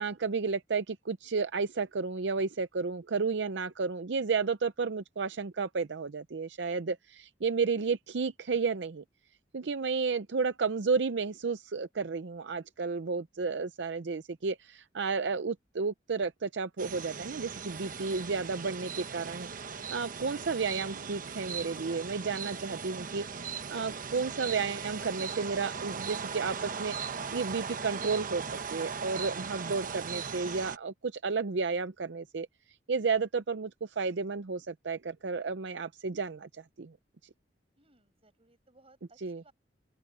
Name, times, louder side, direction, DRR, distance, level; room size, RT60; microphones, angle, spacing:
voice 1, 0.0-9.0 9.5-27.0 27.3-32.5 32.9-36.5 36.8-36.9 39.2-39.4, right 4 dB, 70° right, 0.6 m, -32 dB
sound 1, 16.8-30.8, right 6 dB, 50° right, 1.0 m, -38 dB
voice 2, 37.8-39.5, right 2 dB, 35° right, 7.5 m, -63 dB
open air
head